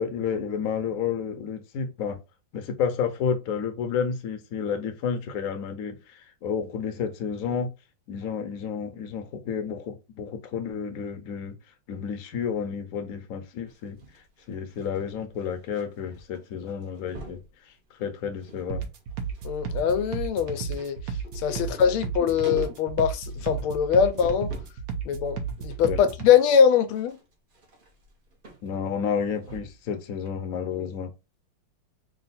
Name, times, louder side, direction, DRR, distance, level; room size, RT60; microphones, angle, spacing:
voice 1, 0.0-2.2 2.5-7.7 8.1-11.5 11.9-14.0 14.5-17.4 18.0-18.8 21.6-21.7 25.8-26.0 28.6-31.1, left 7 dB, 60° left, 0.9 m, -31 dB
sound 1, 13.7-15.8 16.1-16.4 16.7-17.5 18.0-18.7 19.0-24.8 25.3-29.9 30.3-30.4, equal, 40° right, 0.8 m, -44 dB
sound 2, 18.7-26.3, right 5 dB, 60° right, 1.1 m, -33 dB
voice 2, 19.4-21.0 21.3-24.5 25.0-27.1, left 7 dB, 90° left, 1.5 m, -22 dB
3.8 x 2.3 x 4.1 m
omnidirectional pair, 2.2 m